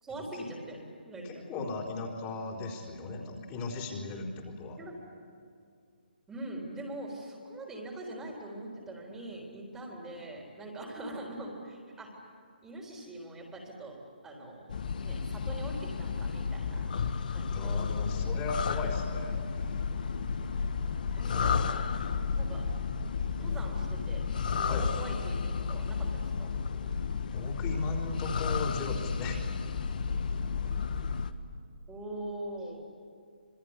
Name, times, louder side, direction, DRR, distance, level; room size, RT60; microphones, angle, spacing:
voice 1, 0.0-0.8 1.1-1.4 4.8-5.0 6.3-12.1 12.6-14.7 15.0-16.9 17.3-18.4 21.2-21.9 22.4-22.7 23.4-26.5 31.9-32.8, right 1 dB, 10° right, -1 dB, 3.9 m, -43 dB
voice 2, 1.2-4.8 17.5-19.8 24.7-24.9 27.3-29.5, left 3 dB, 25° left, -2 dB, 4.1 m, -37 dB
sound 1, 14.7-31.3, left 5 dB, 55° left, 1.6 m, -32 dB
27.0 x 21.5 x 9.9 m, 2.3 s
figure-of-eight pair, 150°, 5 cm